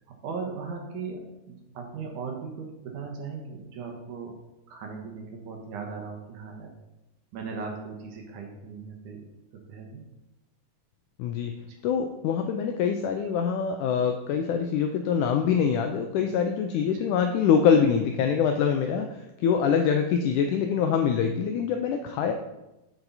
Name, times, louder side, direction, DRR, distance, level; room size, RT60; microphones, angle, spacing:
voice 1, 0.2-1.2 1.5-4.3 4.7-6.7 7.3-9.2 9.7-10.0 11.7-11.8 16.9-17.1, right 5 dB, 70° right, 2 dB, 2.4 m, -38 dB
voice 2, 11.2-11.5 11.8-22.3, left 7 dB, 85° left, 5 dB, 1.8 m, -24 dB
7.7 x 7.1 x 4.0 m, 0.96 s
omnidirectional pair, 4.1 m